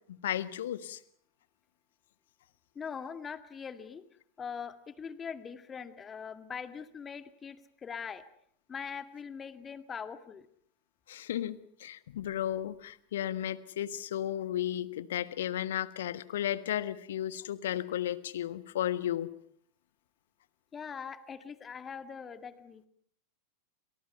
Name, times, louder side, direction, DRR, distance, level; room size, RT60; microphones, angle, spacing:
voice 1, 0.1-1.0 11.1-19.3, left 11 dB, 60° left, 15 dB, 1.4 m, -34 dB
voice 2, 2.8-4.0 4.4-8.2 8.7-10.5 20.7-22.9, left 6 dB, 20° left, 10 dB, 2.0 m, -42 dB
29.5 x 27.0 x 5.7 m, 0.65 s
figure-of-eight pair, 90°, 0 cm